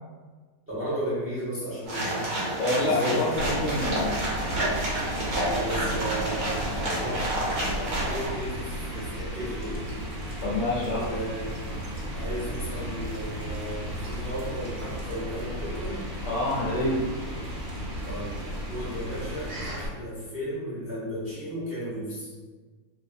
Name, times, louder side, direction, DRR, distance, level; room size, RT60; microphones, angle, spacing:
voice 1, 0.7-2.3 2.8-3.6 5.4-7.4 7.6-9.9 11.1-11.6 12.1-16.0 18.0-18.3 18.7-22.3, equal, 15° right, -9 dB, 0.5 m, -34 dB
sound 1, 1.8-8.3, right 1 dB, 65° right, 1.1 m, -29 dB
voice 2, 2.6-4.2 10.4-11.1 16.2-17.1, left 1 dB, 65° left, -7 dB, 0.6 m, -27 dB
sound 2, 3.3-19.9, equal, 90° right, 1.2 m, -34 dB
2.5 x 2.4 x 2.5 m, 1.4 s
omnidirectional pair, 1.6 m